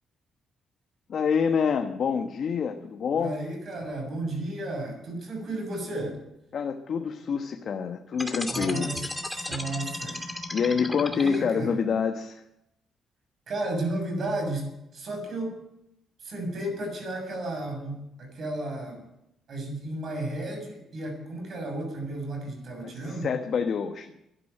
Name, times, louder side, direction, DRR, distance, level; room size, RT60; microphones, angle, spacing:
voice 1, 1.1-3.4 6.5-8.9 10.5-12.4 22.8-24.1, left 6 dB, 60° left, 5 dB, 1.2 m, -27 dB
voice 2, 3.1-6.2 8.5-10.2 11.1-11.8 13.5-15.7 16.2-19.1 19.5-23.3, right 1 dB, 55° right, 3 dB, 6.7 m, -33 dB
sound 1, 8.1-11.7, left 1 dB, 5° left, 2.3 m, -34 dB
12.0 x 11.0 x 9.0 m, 0.84 s
cardioid pair, 90°, 0 cm